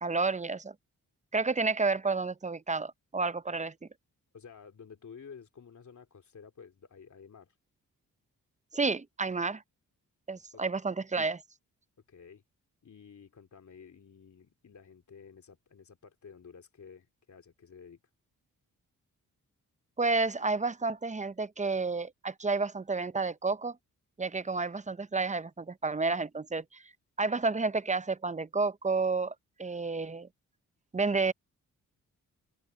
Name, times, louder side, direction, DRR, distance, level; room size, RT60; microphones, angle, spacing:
voice 1, 0.0-0.7 1.3-3.7 8.7-9.6 10.3-11.4 20.0-23.8 24.2-26.8 27.2-29.3 29.6-30.3 30.9-31.3, right 3 dB, 20° right, 0.7 m, -30 dB
voice 2, 4.3-7.6 10.5-10.6 12.1-12.4 12.8-18.0, left 6 dB, 55° left, 2.9 m, -52 dB
open air
cardioid pair, 60°, 35 cm